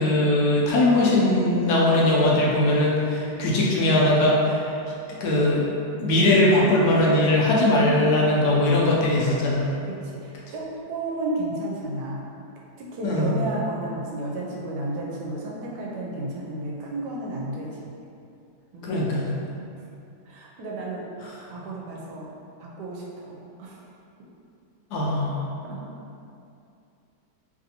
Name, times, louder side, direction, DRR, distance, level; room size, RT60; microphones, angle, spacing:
voice 1, 0.0-4.7 5.2-5.7 6.0-9.7 13.0-13.4 18.8-19.3 24.9-25.4, left 1 dB, 75° left, -4 dB, 1.1 m, -20 dB
voice 2, 8.9-9.2 9.8-12.2 12.8-17.9 18.7-19.2 20.3-21.1 21.5-22.3 22.6-23.8 25.6-25.8, right 2 dB, 80° right, -3 dB, 1.2 m, -33 dB
3.2 x 2.6 x 2.7 m, 2.6 s
omnidirectional pair, 1.8 m